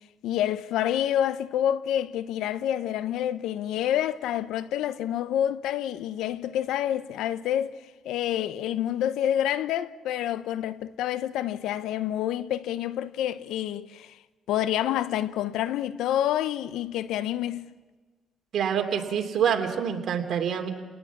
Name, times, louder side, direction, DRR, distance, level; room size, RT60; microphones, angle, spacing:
voice 1, 0.2-14.2 14.5-17.7, left 11 dB, 90° left, 0.8 m, -28 dB
voice 2, 18.5-20.7, right 8 dB, 65° right, 3.0 m, -26 dB
29.5 x 19.0 x 7.3 m
cardioid pair, 90°, 0 cm